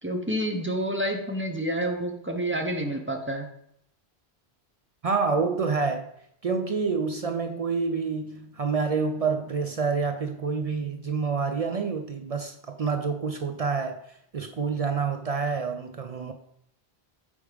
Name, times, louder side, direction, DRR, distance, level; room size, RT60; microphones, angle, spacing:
voice 1, 0.0-3.5, right 1 dB, 15° right, 0.8 m, -29 dB
voice 2, 5.0-6.1 6.4-14.0 14.3-16.3, right 5 dB, 50° right, 0.4 m, -27 dB
8.4 x 3.5 x 4.9 m
omnidirectional pair, 1.1 m